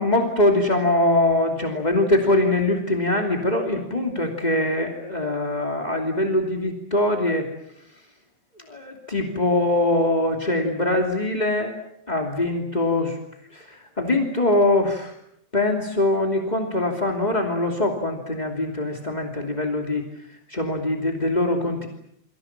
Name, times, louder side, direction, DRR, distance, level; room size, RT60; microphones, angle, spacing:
voice 1, 0.0-7.5 8.7-11.7 12.1-13.2 13.5-15.1 15.5-20.0 20.5-21.9, left 2 dB, 20° left, 2 dB, 1.1 m, -22 dB
28.5 x 24.5 x 7.4 m, 0.74 s
omnidirectional pair, 5.8 m